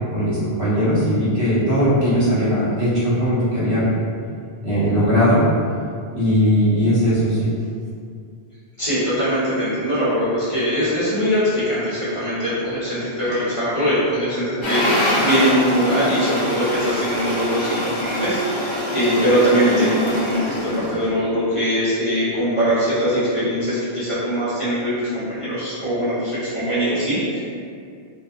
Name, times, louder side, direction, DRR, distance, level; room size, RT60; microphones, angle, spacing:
voice 1, 0.1-3.9 4.6-5.5 6.1-7.5, equal, 60° right, -10 dB, 1.0 m, -19 dB
voice 2, 8.8-27.4, equal, 35° left, -13 dB, 0.8 m, -21 dB
sound 1, 14.6-21.1, equal, 55° left, 0.3 m, -24 dB
2.6 x 2.2 x 2.4 m, 2.3 s
omnidirectional pair, 1.1 m